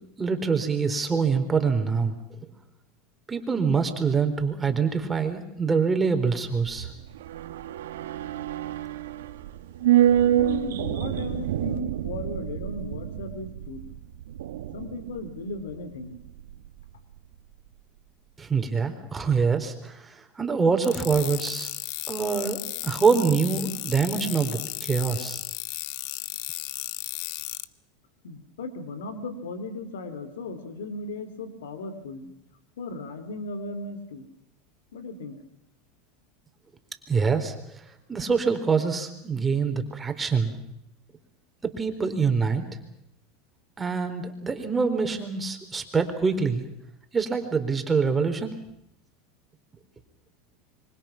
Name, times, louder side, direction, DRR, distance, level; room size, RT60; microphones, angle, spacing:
voice 1, 0.2-2.5 3.3-6.9 18.4-21.7 22.1-25.4 37.1-37.8 38.1-40.5 41.6-42.6 43.8-46.6 47.1-48.6, right 5 dB, 15° right, 6 dB, 4.1 m, -25 dB
sound 1, 6.4-16.9 17.2-17.3, right 11 dB, 85° right, 1.8 m, -28 dB
voice 2, 10.4-13.8 14.7-16.2 28.2-32.3 32.8-34.3 34.9-35.4, left 2 dB, 90° left, 11 dB, 3.3 m, -36 dB
sound 2, 20.8-27.6, left 18 dB, 65° left, 1.0 m, -35 dB
26.5 x 24.5 x 6.0 m, 0.79 s
supercardioid pair, 115°, 0 cm